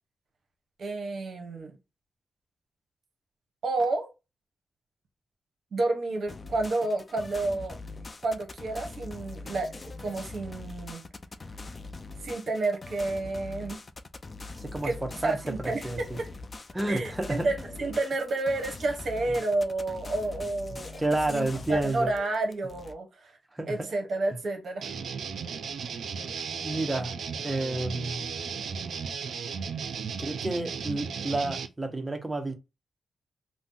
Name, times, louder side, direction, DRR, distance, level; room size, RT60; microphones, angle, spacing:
voice 1, 0.8-1.8 3.6-4.1 5.7-7.8 8.2-11.0 12.2-13.8 14.8-15.9 16.2-16.3 16.9-21.0 21.3-23.3 23.7-24.9, right 2 dB, 60° right, 0.7 m, -30 dB
sound 1, 6.3-22.9, left 3 dB, 35° left, 0.3 m, -42 dB
voice 2, 14.6-16.2 16.7-17.5 21.0-22.1 23.5-23.9 26.5-27.1 27.4-28.3 30.2-32.5, right 2 dB, 15° right, 0.6 m, -30 dB
sound 2, 24.8-31.7, right 6 dB, 75° right, 0.4 m, -35 dB
2.5 x 2.0 x 3.7 m
cardioid pair, 100°, 0 cm